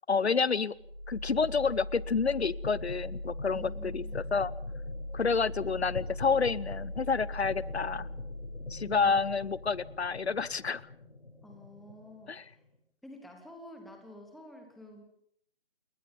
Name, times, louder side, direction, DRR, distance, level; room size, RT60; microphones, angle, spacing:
voice 1, 0.1-0.7 1.1-4.5 5.1-8.1 8.7-10.8 12.3-12.4, left 5 dB, 80° left, 21 dB, 1.0 m, -29 dB
sound 1, 0.7-12.6, left 1 dB, 65° left, 7.9 m, -40 dB
voice 2, 3.5-4.2 8.8-9.2 11.4-12.6 13.0-15.0, right 1 dB, ahead, 2 dB, 1.1 m, -50 dB
29.0 x 21.5 x 5.5 m, 0.67 s
figure-of-eight pair, 160°, 32 cm